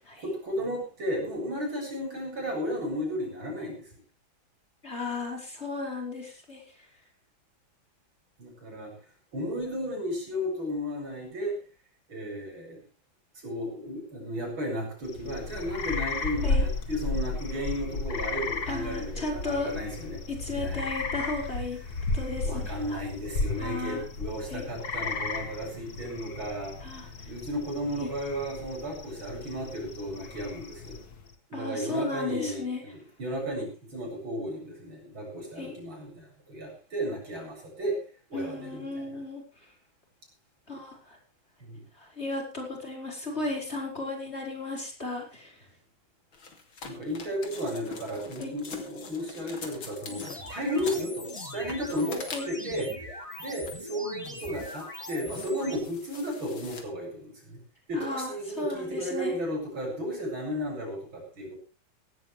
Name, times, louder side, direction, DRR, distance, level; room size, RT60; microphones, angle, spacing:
voice 1, 0.2-3.9 8.4-9.0 9.3-11.6 12.1-12.8 13.4-20.2 20.5-20.9 22.4-26.8 27.3-31.0 31.5-38.0 38.3-39.2 41.6-41.8 46.8-57.6 57.9-61.6, equal, 85° right, 1 dB, 8.4 m, -34 dB
voice 2, 4.8-6.6 16.4-16.7 18.7-19.7 20.3-21.8 22.1-23.0 23.6-24.0 24.5-24.7 26.8-27.3 28.0-28.1 31.5-32.8 35.6-35.7 38.3-39.4 40.7-41.2 42.0-45.7 48.4-48.6 52.3-52.5 57.9-59.3, left 2 dB, 30° left, 0 dB, 5.5 m, -35 dB
sound 1, 15.0-31.3, left 3 dB, 50° left, 2.3 m, -34 dB
sound 2, 46.3-52.7 53.3-53.9 54.2-56.8, left 4 dB, 90° left, 3.5 m, -44 dB
sound 3, 50.1-55.8, left 1 dB, 15° left, 2.9 m, -41 dB
18.0 x 16.0 x 3.4 m, 0.33 s
omnidirectional pair, 2.1 m